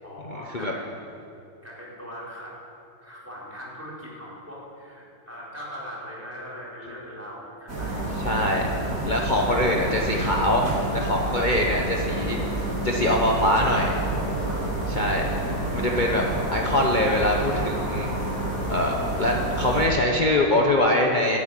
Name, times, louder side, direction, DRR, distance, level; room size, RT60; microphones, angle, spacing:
voice 1, 0.0-1.0 1.6-2.6 3.0-8.1 14.4-14.9, equal, 10° right, -6 dB, 4.0 m, -40 dB
sound 1, 7.7-19.9, right 1 dB, 60° right, 4.0 m, -28 dB
voice 2, 8.2-8.7 9.0-10.7 10.9-14.0 14.9-15.3 15.7-16.2 16.5-18.1 18.7-21.4, left 1 dB, 35° left, -1 dB, 1.0 m, -23 dB
12.5 x 10.0 x 8.9 m, 2.8 s
omnidirectional pair, 1.7 m